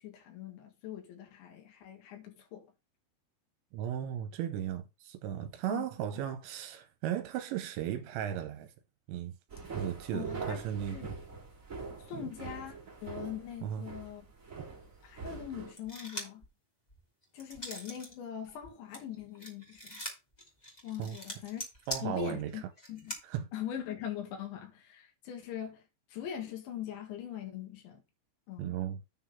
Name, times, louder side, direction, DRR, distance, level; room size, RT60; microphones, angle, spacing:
voice 1, 0.0-2.7 5.7-5.9 10.1-10.6 10.9-11.1 12.1-14.3 15.0-16.4 17.3-20.0 20.8-21.6 22.0-22.6 22.9-23.1 23.5-25.8 26.1-28.0 28.5-28.8, left 10 dB, 80° left, 4.1 m, -41 dB
voice 2, 3.7-8.7 9.1-9.4 9.7-11.1 12.1-12.3 13.6-13.9 14.6-14.7 21.0-21.2 21.9-22.5 23.3-23.4 28.6-29.0, right 10 dB, 80° right, 3.0 m, -36 dB
sound 1, 9.5-15.7, right 4 dB, 25° right, 1.8 m, -44 dB
sound 2, 15.8-16.5 16.9-18.1 18.5-23.2, equal, 30° left, 0.7 m, -42 dB
9.3 x 4.0 x 5.6 m
omnidirectional pair, 5.3 m